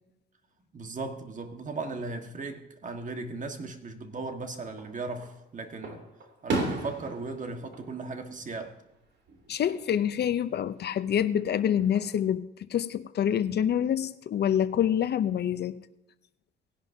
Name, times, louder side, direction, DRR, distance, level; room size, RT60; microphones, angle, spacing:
voice 1, 0.7-6.0 6.4-8.8, right 3 dB, 40° right, 1.7 m, -37 dB
Fireworks, 4.7-5.4 5.8-9.0 9.3-9.8 11.4-12.2, right 3 dB, 65° right, 3.0 m, -35 dB
voice 2, 9.5-15.8, left 9 dB, 55° left, 0.6 m, -27 dB
18.5 x 11.0 x 2.8 m
cardioid pair, 90°, 20 cm